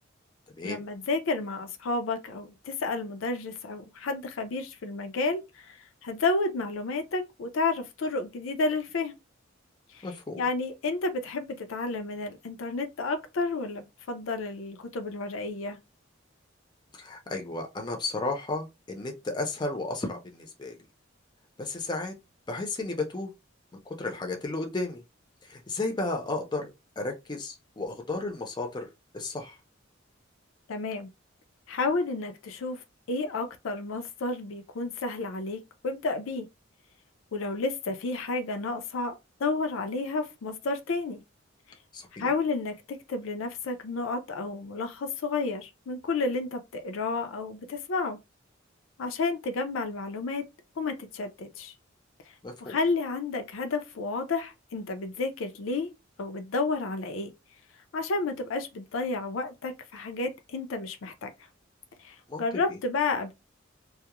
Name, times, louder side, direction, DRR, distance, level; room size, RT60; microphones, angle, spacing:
voice 1, 0.6-9.1 9.9-10.1 10.4-15.8 30.7-31.1 31.7-32.8 33.1-36.5 37.3-41.2 42.2-48.2 49.0-50.4 50.8-51.7 52.6-55.9 56.2-57.3 57.9-61.3 62.0-63.3, left 3 dB, 90° left, 0.4 m, -31 dB
voice 2, 10.0-10.5 17.0-20.8 21.6-22.1 22.5-23.3 23.9-25.0 25.4-26.7 27.0-28.9 29.1-29.6 41.9-42.3 52.4-52.8 62.3-62.4 62.7-62.8, left 2 dB, 20° left, 0.5 m, -33 dB
2.3 x 2.0 x 2.9 m
head